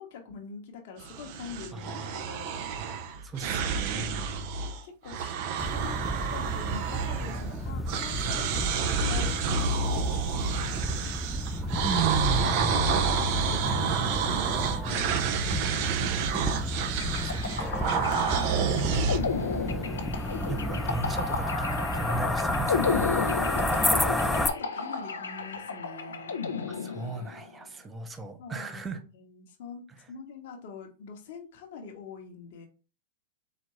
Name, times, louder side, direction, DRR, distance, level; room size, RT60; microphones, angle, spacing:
voice 1, 0.0-2.6 4.8-10.9 12.8-16.1 18.2-19.4 23.7-26.3 28.4-28.8 29.1-32.7, left 5 dB, 60° left, 1.2 m, -44 dB
sound 1, 1.0-4.8 5.1-7.6 7.9-19.2, right 6 dB, 55° right, 0.7 m, -29 dB
voice 2, 1.7-2.3 3.2-4.6 11.8-13.0 17.2-17.8 18.8-19.0 20.5-23.1 26.7-29.0 30.0-30.1, right 4 dB, 20° right, 0.8 m, -36 dB
sound 2, 5.6-24.5, left 1 dB, 5° left, 0.5 m, -31 dB
sound 3, 17.0-27.4, left 5 dB, 85° left, 0.7 m, -33 dB
4.2 x 3.5 x 3.1 m
hypercardioid pair, 105°, 0 cm